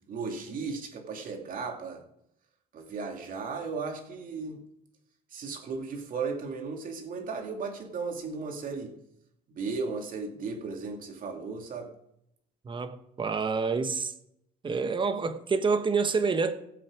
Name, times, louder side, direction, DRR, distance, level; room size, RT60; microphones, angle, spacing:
voice 1, 0.1-2.0 2.7-4.6 5.3-8.9 9.5-11.9, right 4 dB, 55° right, 2.5 m, -35 dB
voice 2, 12.6-14.1 14.6-16.5, right 4 dB, 30° right, 1.2 m, -27 dB
17.5 x 7.7 x 5.0 m
cardioid pair, 110°, 17 cm